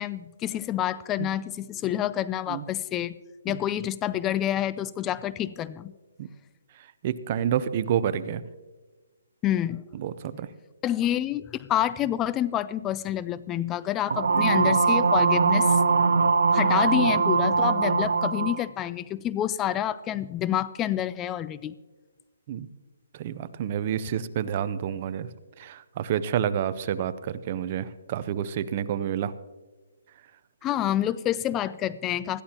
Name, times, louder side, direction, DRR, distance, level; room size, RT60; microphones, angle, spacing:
voice 1, 0.0-3.2 3.4-5.9 9.4-9.8 10.8-21.7 30.6-32.4, left 12 dB, 15° left, 17 dB, 0.4 m, -28 dB
voice 2, 7.0-8.4 10.0-10.5 22.5-22.7 23.1-25.3 25.6-29.3, right 9 dB, 35° right, 14 dB, 0.6 m, -29 dB
sound 1, 14.1-18.6, right 4 dB, 75° right, 0.8 m, -21 dB
20.0 x 13.0 x 2.9 m, 1.2 s
hypercardioid pair, 160°, 0 cm